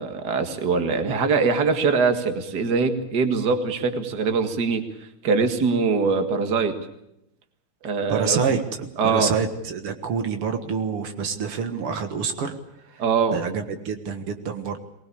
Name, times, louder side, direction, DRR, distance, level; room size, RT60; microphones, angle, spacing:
voice 1, 0.0-4.8 5.2-6.7 7.8-8.4 9.0-9.3 13.0-13.4, right 4 dB, 50° right, 7 dB, 2.3 m, -22 dB
voice 2, 8.1-12.6 12.8-13.0 13.3-14.8, right 6 dB, 80° right, 7 dB, 2.5 m, -27 dB
22.5 x 19.5 x 8.5 m, 0.82 s
omnidirectional pair, 2.4 m